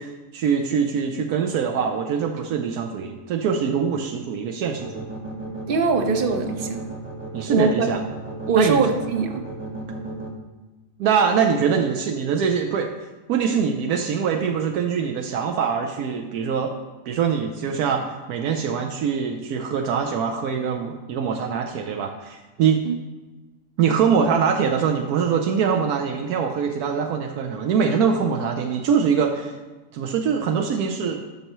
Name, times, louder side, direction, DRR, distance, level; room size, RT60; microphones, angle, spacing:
voice 1, 0.0-5.1 7.3-8.0 8.6-8.8 11.0-12.9 13.3-16.8 17.1-22.8 23.8-29.5 29.9-31.2, right 6 dB, 85° right, 3 dB, 1.1 m, -23 dB
sound 1, 4.8-10.3, right 2 dB, 10° right, 0.8 m, -33 dB
voice 2, 5.7-6.8 7.5-7.9 8.5-9.4 22.9-23.0, right 4 dB, 50° right, 6 dB, 0.7 m, -22 dB
12.5 x 5.5 x 3.0 m, 1.2 s
omnidirectional pair, 1.6 m